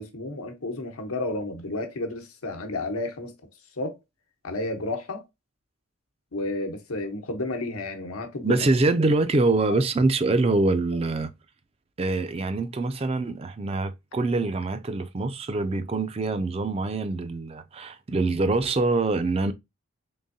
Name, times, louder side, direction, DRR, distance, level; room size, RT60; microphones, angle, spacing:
voice 1, 0.0-3.3 3.8-4.0 4.4-5.2 6.3-8.6 9.7-9.8, left 2 dB, 85° left, 1.0 m, -31 dB
voice 2, 8.4-11.3 12.0-19.5, right 3 dB, 25° right, 0.3 m, -24 dB
3.7 x 3.5 x 2.6 m
head